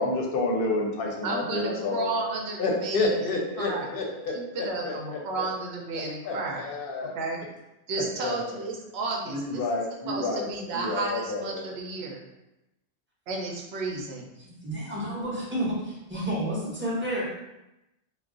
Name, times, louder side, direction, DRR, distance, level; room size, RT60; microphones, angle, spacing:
voice 1, 0.0-2.2 2.6-5.5 5.9-7.1 8.2-8.6 9.3-10.5 10.7-11.6, left 2 dB, 60° left, 0 dB, 0.7 m, -29 dB
voice 2, 1.2-3.3 3.6-3.9 4.3-6.7 7.0-7.4 7.9-9.6 10.1-12.2 13.3-14.3, right 3 dB, 70° right, 0 dB, 0.8 m, -33 dB
voice 3, 14.4-17.3, right 1 dB, 10° right, -7 dB, 0.7 m, -30 dB
2.3 x 2.1 x 3.6 m, 0.93 s
omnidirectional pair, 1.2 m